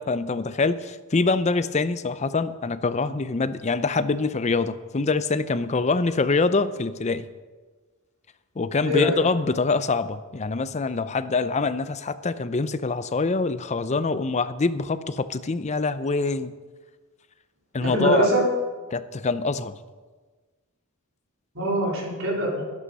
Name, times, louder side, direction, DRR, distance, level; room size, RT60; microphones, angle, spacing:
voice 1, 0.0-7.3 8.6-16.5 17.7-18.3 18.9-19.8, left 3 dB, 30° left, 13 dB, 0.5 m, -25 dB
voice 2, 8.8-9.2 17.8-18.4 21.5-22.6, equal, 65° right, -3 dB, 4.4 m, -23 dB
12.0 x 11.0 x 5.4 m, 1.3 s
head